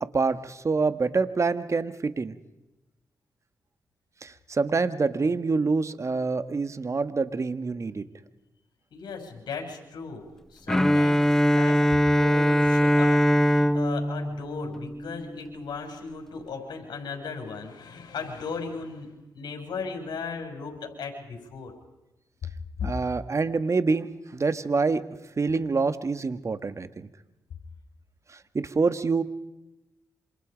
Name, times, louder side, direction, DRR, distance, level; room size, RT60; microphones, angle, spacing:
voice 1, 0.1-2.3 4.2-8.0 22.8-25.0 25.4-27.1 28.5-29.2, right 4 dB, 40° right, 12 dB, 1.6 m, -26 dB
voice 2, 8.9-10.2 10.5-21.7 22.8-22.9, left 5 dB, 75° left, 3 dB, 6.4 m, -37 dB
Bowed string instrument, 10.7-15.5, equal, 5° left, 1.3 m, -22 dB
27.0 x 26.5 x 5.2 m, 0.99 s
cardioid pair, 55°, 7 cm